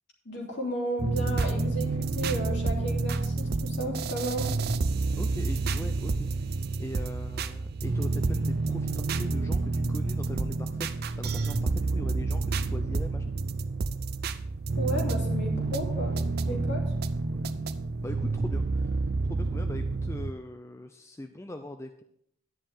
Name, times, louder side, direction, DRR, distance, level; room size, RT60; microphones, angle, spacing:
voice 1, 0.2-4.5 14.8-16.1 16.4-16.8, right 1 dB, 55° left, -2 dB, 3.1 m, -33 dB
sound 1, 1.0-20.3, right 3 dB, 50° right, 0.5 m, -29 dB
voice 2, 5.1-13.3 16.5-16.9 17.2-22.0, left 1 dB, 15° left, 7 dB, 0.4 m, -42 dB
10.5 x 10.0 x 3.5 m, 0.71 s
head